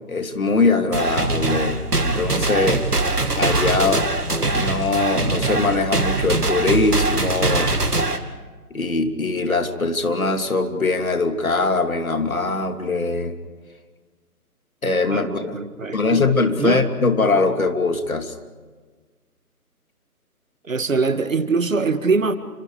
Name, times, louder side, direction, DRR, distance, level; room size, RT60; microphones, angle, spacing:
voice 1, 0.1-3.1 3.4-4.1 4.5-7.7 8.7-13.3 14.8-15.6 15.9-18.3, left 3 dB, 65° left, 6 dB, 3.0 m, -21 dB
sound 1, 0.9-8.2, right 2 dB, 80° right, 2.6 m, -22 dB
voice 2, 15.1-16.3 16.6-16.8 20.6-22.3, right 4 dB, 55° right, 11 dB, 1.9 m, -23 dB
30.0 x 27.0 x 5.0 m, 1.4 s
figure-of-eight pair, 150°, 46 cm